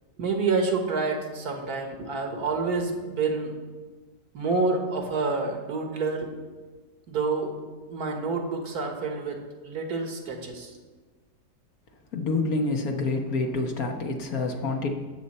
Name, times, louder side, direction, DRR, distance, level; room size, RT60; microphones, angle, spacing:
voice 1, 0.2-3.5 4.3-6.3 7.1-7.5 7.9-10.7, right 4 dB, 70° right, 3 dB, 1.9 m, -28 dB
voice 2, 12.1-14.9, left 3 dB, 65° left, 2 dB, 1.5 m, -27 dB
17.5 x 6.8 x 4.3 m, 1.4 s
omnidirectional pair, 1.7 m